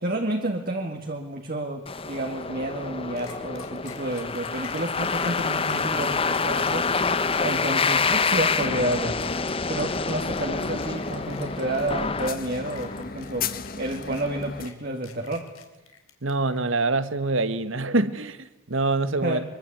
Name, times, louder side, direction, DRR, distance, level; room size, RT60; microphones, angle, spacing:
voice 1, 0.0-6.9 7.4-9.2 9.7-13.5 13.8-15.4 19.2-19.4, right 1 dB, 45° right, 2.2 m, -30 dB
sound 1, 1.9-13.0, left 4 dB, 25° left, 0.9 m, -27 dB
sound 2, 3.2-16.6, left 7 dB, 85° left, 3.9 m, -48 dB
sound 3, 7.9-14.7, left 4 dB, 45° left, 1.4 m, -37 dB
voice 2, 16.2-19.4, right 2 dB, 65° right, 1.5 m, -25 dB
25.0 x 23.0 x 8.9 m
head